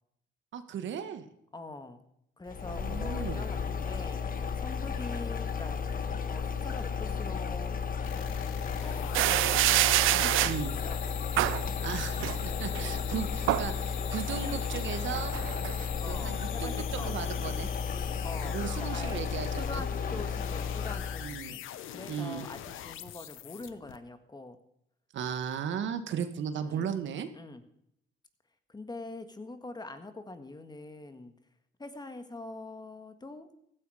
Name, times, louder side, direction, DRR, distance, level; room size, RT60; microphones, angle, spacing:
voice 1, 0.5-1.3 2.7-3.5 10.4-10.7 11.8-15.3 16.1-17.7 18.4-19.8 20.1-20.2 21.2-21.5 22.1-22.5 25.1-27.3, right 8 dB, 70° right, 10 dB, 1.5 m, -36 dB
voice 2, 1.5-2.1 2.4-4.2 4.6-5.8 6.3-7.7 8.8-11.0 11.3-12.3 12.8-13.4 14.4-14.6 15.8-17.1 18.2-24.6 26.5-26.9 27.3-27.6 28.7-31.3 31.8-33.5, left 2 dB, 20° left, 9 dB, 1.7 m, -44 dB
sound 1, 2.5-21.4, left 6 dB, 45° left, 1.4 m, -33 dB
sound 2, 8.0-24.0, left 12 dB, 85° left, 0.9 m, -43 dB
sound 3, 9.1-10.6 11.4-11.7 12.2-12.8 13.2-13.7 14.1-15.8, right 16 dB, 85° right, 0.5 m, -27 dB
15.5 x 12.5 x 4.9 m, 0.75 s
cardioid pair, 90°, 20 cm